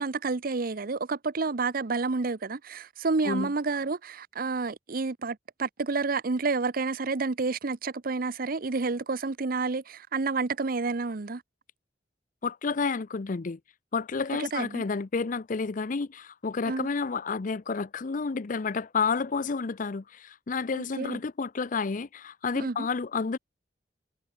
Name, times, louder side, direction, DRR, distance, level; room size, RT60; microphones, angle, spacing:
voice 1, 0.0-11.4 14.4-14.8 16.7-16.9 20.7-21.2 22.5-22.9, right 4 dB, 50° right, 0.8 m, -30 dB
voice 2, 12.4-13.6 13.9-23.4, left 4 dB, 45° left, 0.6 m, -30 dB
head